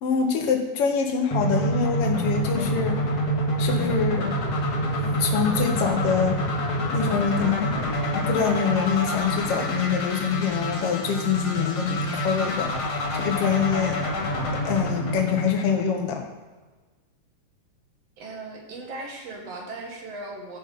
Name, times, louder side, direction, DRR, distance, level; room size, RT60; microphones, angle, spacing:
voice 1, 0.0-3.0 3.6-4.3 5.0-6.4 6.9-7.8 8.1-14.0 14.6-16.3, left 7 dB, 70° left, 4 dB, 1.4 m, -25 dB
sound 1, 1.3-16.2, equal, 45° left, 2.1 m, -27 dB
voice 2, 18.2-20.6, right 2 dB, 55° right, 0 dB, 2.3 m, -37 dB
14.5 x 5.4 x 3.9 m, 1.3 s
omnidirectional pair, 3.7 m